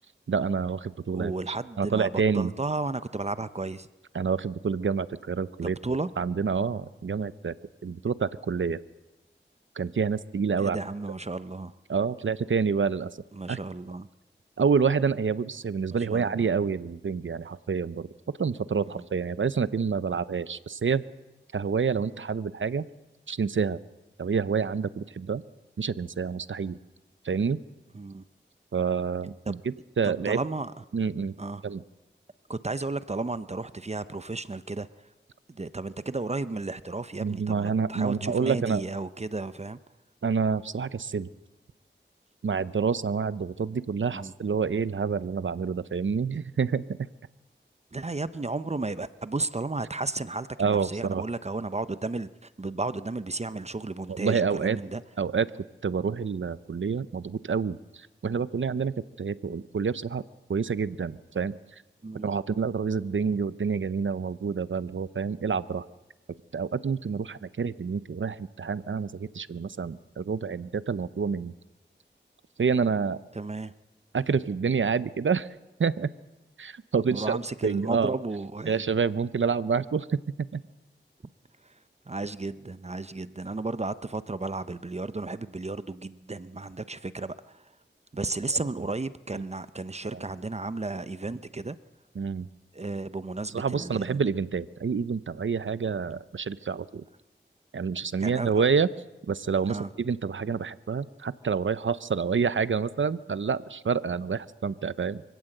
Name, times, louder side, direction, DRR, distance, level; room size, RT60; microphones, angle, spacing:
voice 1, 0.3-2.5 4.1-5.8 6.2-7.5 7.8-8.8 9.8-10.8 11.9-13.1 13.5-13.6 14.6-18.1 18.4-21.0 21.5-22.9 23.3-23.8 24.2-25.4 25.8-26.8 27.2-27.6 28.7-30.4 30.9-31.3 31.6-31.8 37.2-38.8 40.2-41.3 42.4-46.8 50.6-51.2 54.1-54.8 55.2-55.5 55.8-60.2 60.5-61.8 62.2-65.9 66.5-71.5 72.6-73.2 74.1-75.5 75.8-76.1 76.6-78.1 78.7-80.6 89.3-89.4 90.1-90.2 92.2-92.5 93.5-97.0 97.7-98.9 99.3-105.2, right 5 dB, 85° right, 16 dB, 0.7 m, -28 dB
voice 2, 1.1-3.9 5.6-6.1 10.6-11.7 13.3-14.1 16.1-16.5 19.0-19.1 27.9-28.2 29.5-29.6 30.0-30.7 31.4-31.6 32.5-34.9 35.5-39.8 44.1-44.3 47.9-52.3 52.6-55.0 62.0-62.3 73.3-73.7 77.1-78.8 82.1-87.6 88.1-91.8 92.7-94.2 98.2-98.6 99.7-99.9, right 3 dB, 35° right, 14 dB, 0.7 m, -33 dB
24.5 x 16.5 x 7.9 m, 1.0 s
wide cardioid pair, 65°, 19 cm